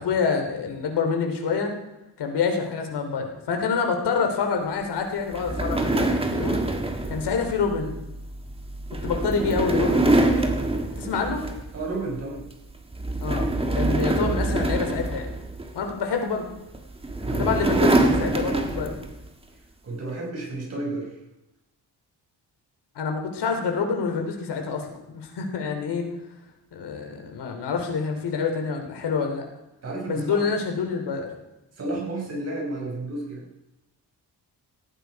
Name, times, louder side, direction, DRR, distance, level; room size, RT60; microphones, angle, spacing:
voice 1, 0.0-1.7 2.2-6.6 7.1-7.9 9.0-10.3 11.0-11.4 13.2-13.5 13.7-15.3 15.7-16.5 17.3-18.9 22.9-26.0 26.7-29.4 30.1-31.3, left 5 dB, 75° left, 4 dB, 3.4 m, -27 dB
sound 1, 5.3-11.9 12.2-12.5 12.9-15.9 16.7-19.2, right 2 dB, 15° right, 1.5 m, -25 dB
voice 2, 11.7-12.4 17.2-17.6 19.8-21.1 29.8-30.5 31.8-33.5, right 2 dB, 40° right, -1 dB, 5.5 m, -32 dB
18.0 x 15.0 x 4.7 m, 0.96 s
wide cardioid pair, 180°, 40 cm